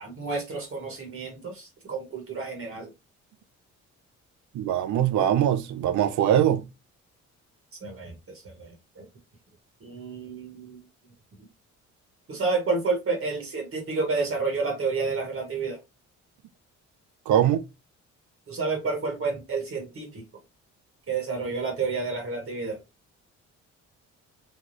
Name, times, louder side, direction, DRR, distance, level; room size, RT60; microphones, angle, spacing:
voice 1, 0.0-2.9 7.8-9.0 9.8-10.8 12.3-15.8 18.5-20.2 21.1-22.8, right 4 dB, 45° right, 1.1 m, -30 dB
voice 2, 4.5-6.7 17.3-17.6, right 10 dB, 75° right, 0.5 m, -22 dB
3.3 x 2.3 x 2.5 m
cardioid pair, 90°, 30 cm